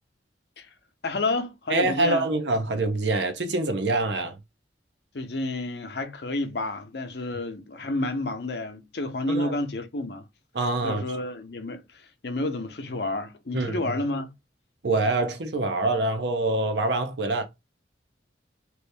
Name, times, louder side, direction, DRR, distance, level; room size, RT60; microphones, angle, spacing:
voice 1, 1.0-2.3 5.1-10.2 10.8-14.3, left 2 dB, 65° left, 0.7 m, -30 dB
voice 2, 1.7-4.4 9.3-9.6 10.5-11.0 13.5-13.8 14.8-17.4, right 2 dB, 70° right, 0.7 m, -25 dB
3.1 x 2.7 x 3.3 m
head